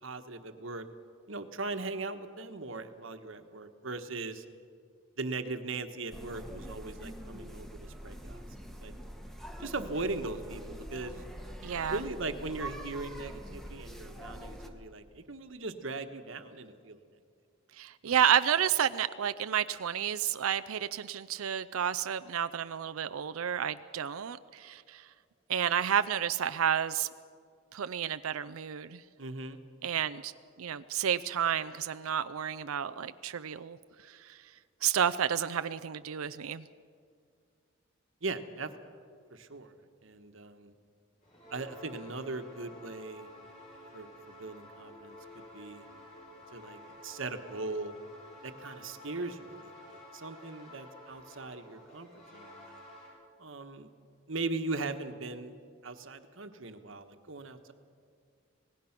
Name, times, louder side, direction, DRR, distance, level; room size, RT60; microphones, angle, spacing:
voice 1, 0.0-0.9 1.3-4.4 5.2-8.4 8.8-8.9 9.6-11.2 11.9-17.0 18.1-18.2 29.2-29.6 38.2-38.7 39.3-39.7 40.0-40.7 41.5-43.3 43.9-45.8 46.5-47.9 48.4-52.8 53.4-53.9 54.3-55.5 55.8-57.7, right 3 dB, 70° right, 8 dB, 1.3 m, -39 dB
sound 1, 6.1-14.7, equal, ahead, 1.4 m, -44 dB
voice 2, 11.6-12.0 17.8-25.1 25.5-27.1 27.7-29.0 29.8-30.3 30.6-33.8 34.1-34.4 34.8-36.6, right 9 dB, 90° right, 11 dB, 0.5 m, -31 dB
sound 2, 41.2-53.1, left 1 dB, 35° left, 7.9 m, -51 dB
26.5 x 19.0 x 5.9 m, 2.2 s
head